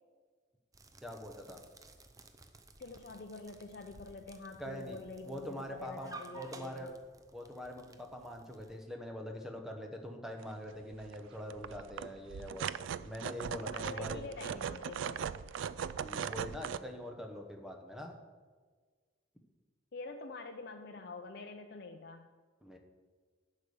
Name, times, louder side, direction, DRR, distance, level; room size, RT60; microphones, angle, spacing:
sound 1, 0.7-8.8, right 3 dB, 20° right, 0.5 m, -55 dB
voice 1, 1.0-1.6 4.6-5.0 5.3-6.9 7.3-12.7 13.0-14.2 16.0-18.1 22.6-22.8, equal, ahead, 3 dB, 1.0 m, -44 dB
voice 2, 2.8-7.0 13.7-15.3 19.9-22.3, left 3 dB, 55° left, 3 dB, 0.5 m, -46 dB
sound 2, 10.4-10.5 10.9-11.2 11.4-16.8, right 7 dB, 85° right, 0.3 m, -39 dB
10.5 x 5.0 x 7.0 m, 1.5 s
head